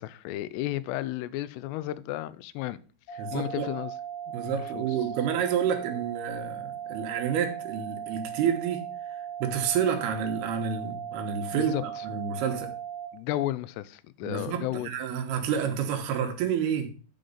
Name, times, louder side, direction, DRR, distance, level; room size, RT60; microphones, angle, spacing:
voice 1, 0.0-2.8 3.1-3.9 4.5-4.8 11.5-11.8 13.1-14.9, left 15 dB, 85° left, 2.7 m, -33 dB
sound 1, 3.1-13.1, right 9 dB, 45° left, 2.7 m, -38 dB
voice 2, 3.2-3.7 4.3-12.7 14.2-16.9, right 8 dB, 75° right, 3.0 m, -29 dB
9.1 x 5.1 x 5.5 m
omnidirectional pair, 4.8 m